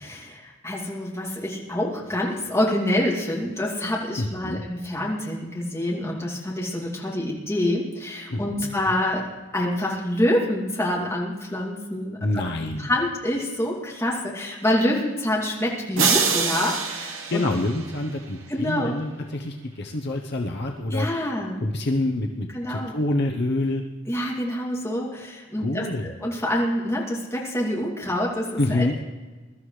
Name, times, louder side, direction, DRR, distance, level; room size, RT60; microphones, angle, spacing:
voice 1, 0.1-9.3 9.5-12.4 12.8-17.4 18.5-18.9 20.9-21.6 22.5-22.9 24.1-28.9, left 1 dB, 15° left, -4 dB, 2.5 m, -26 dB
voice 2, 4.2-4.6 8.3-8.7 12.2-12.9 17.3-21.3 21.6-23.8 25.6-26.1 28.6-29.0, left 2 dB, 55° left, 2 dB, 0.8 m, -27 dB
sound 1, 16.0-18.3, right 5 dB, 70° right, 1.2 m, -25 dB
22.0 x 12.5 x 3.3 m, 1.3 s
head